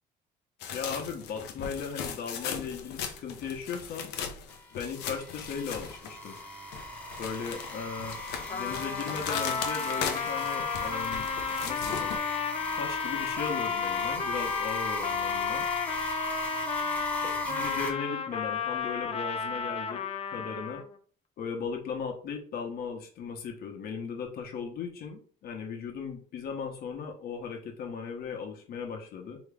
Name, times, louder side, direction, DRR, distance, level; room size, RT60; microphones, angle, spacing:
sound 1, 0.6-6.4 6.7-12.2, left 7 dB, 80° left, 0.7 m, -38 dB
voice 1, 0.7-4.1 4.7-6.4 7.2-8.2 8.5-11.3 11.6-12.1 12.8-15.7 17.4-20.8 21.4-29.4, left 6 dB, 65° left, 2 dB, 1.1 m, -37 dB
sound 2, 4.5-17.9, left 1 dB, 10° left, 0.9 m, -37 dB
Trumpet, 8.5-20.9, left 6 dB, 35° left, 0.5 m, -33 dB
3.5 x 3.0 x 3.4 m, 0.42 s
cardioid pair, 110°, 17 cm